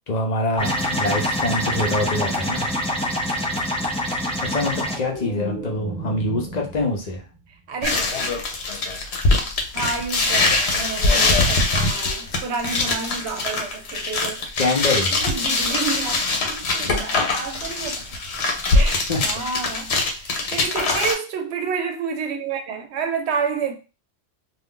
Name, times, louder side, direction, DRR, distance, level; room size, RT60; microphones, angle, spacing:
voice 1, 0.1-2.9 4.5-7.2 14.6-15.1 19.1-19.2, left 2 dB, 45° left, 0.7 m, -25 dB
sound 1, 0.6-5.0, left 1 dB, 10° left, 0.4 m, -25 dB
sound 2, 4.3-7.4 7.8-8.2, right 2 dB, 40° right, 1.0 m, -35 dB
voice 2, 7.7-8.0 9.7-14.5 15.1-18.0 18.7-23.7, right 5 dB, 85° right, 0.9 m, -29 dB
sound 3, 7.8-21.1, left 3 dB, 80° left, 1.0 m, -22 dB
2.4 x 2.4 x 3.6 m
omnidirectional pair, 1.1 m